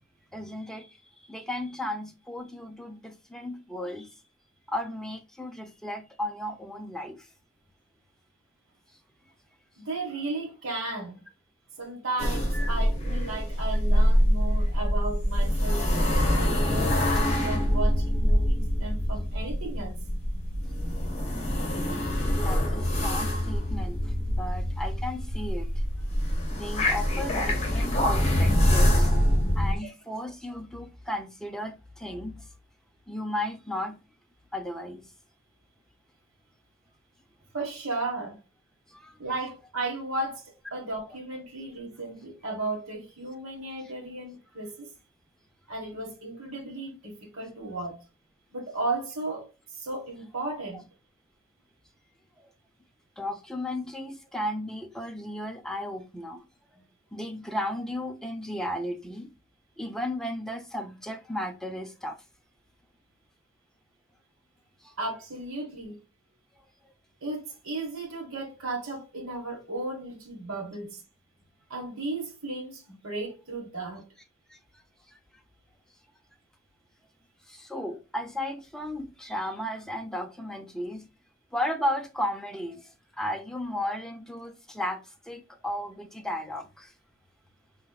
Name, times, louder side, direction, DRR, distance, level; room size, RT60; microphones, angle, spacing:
voice 1, 0.3-4.2 4.7-7.3 12.5-12.7 22.2-25.7 26.5-29.1 29.6-32.5 33.1-34.0 34.5-35.1 38.9-39.2 52.4-52.5 53.2-56.4 57.1-59.3 59.8-62.2 64.8-64.9 74.5-74.6 75.1-75.2 77.5-81.1 81.5-86.9, left 1 dB, 5° left, 0.5 m, -35 dB
voice 2, 9.8-11.2 11.8-15.9 16.3-20.0 37.5-38.4 39.2-44.9 45.7-48.0 48.5-50.8 56.7-56.8 65.0-66.0 67.2-71.0 71.7-74.1, right 2 dB, 75° right, 1.4 m, -35 dB
sound 1, 12.2-29.8, equal, 30° left, 1.2 m, -25 dB
4.4 x 3.3 x 2.3 m
head